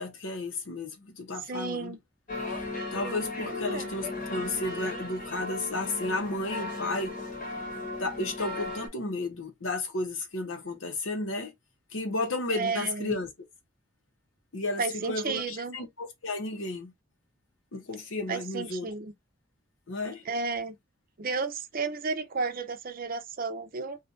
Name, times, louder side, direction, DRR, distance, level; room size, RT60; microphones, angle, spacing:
voice 1, 0.0-2.0 2.9-7.2 8.0-11.5 11.9-13.3 14.5-16.9 17.7-18.9 19.9-20.2, left 2 dB, 75° left, 0.9 m, -33 dB
voice 2, 1.5-2.0 3.5-3.9 12.5-13.2 14.8-15.8 18.3-19.1 20.3-20.8 21.2-24.0, right 4 dB, 45° right, 0.5 m, -32 dB
sound 1, 2.3-8.9, left 2 dB, 40° left, 1.0 m, -36 dB
2.8 x 2.4 x 3.7 m
head